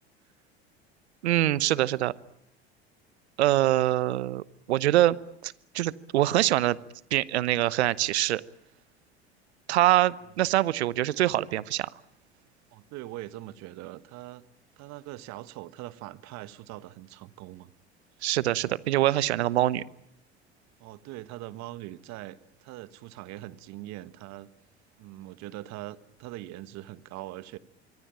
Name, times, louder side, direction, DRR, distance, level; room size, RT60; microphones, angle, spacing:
voice 1, 1.2-2.1 3.4-5.2 5.4-6.8 7.1-8.4 9.7-11.9 18.2-19.8, right 14 dB, 75° right, 20 dB, 1.0 m, -24 dB
voice 2, 12.7-14.4 14.8-17.7 20.8-24.5 25.0-27.6, right 16 dB, 55° right, 14 dB, 1.5 m, -42 dB
25.5 x 23.0 x 8.9 m, 0.77 s
hypercardioid pair, 70°, 33 cm